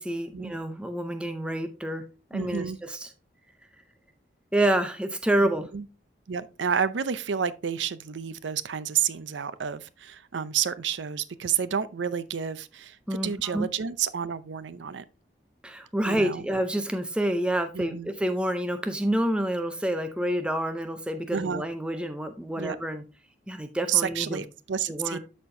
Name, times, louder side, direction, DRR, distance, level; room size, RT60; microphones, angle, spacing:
voice 1, 0.0-2.0 2.3-3.1 4.5-5.7 13.1-13.7 15.6-23.0 23.5-24.4 24.9-25.2, right 1 dB, 5° right, 0.5 m, -28 dB
voice 2, 2.3-2.8 5.7-5.8 6.3-13.0 13.2-15.0 16.0-16.4 17.7-18.1 21.3-21.6 22.6-22.8 23.9-25.2, right 8 dB, 80° right, 0.5 m, -30 dB
13.0 x 4.4 x 2.7 m
head